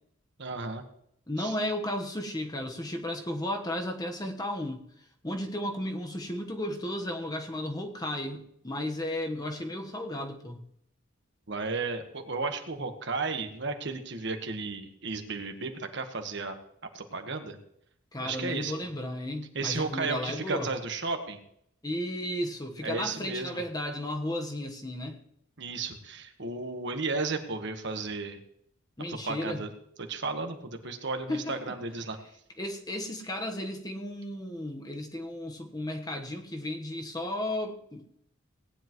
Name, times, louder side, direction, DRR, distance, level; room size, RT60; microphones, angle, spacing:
voice 1, 0.4-0.8 1.4-1.5 11.5-16.6 16.9-17.6 18.2-18.7 19.5-21.4 22.8-23.6 25.6-28.4 29.1-29.7 30.1-32.2, right 3 dB, 60° right, 6 dB, 1.4 m, -34 dB
voice 2, 1.3-4.9 5.2-10.7 18.1-20.7 21.8-25.2 29.0-29.7 31.3-31.7 32.6-38.1, left 1 dB, 20° left, 3 dB, 1.2 m, -34 dB
18.5 x 10.0 x 3.1 m, 0.73 s
head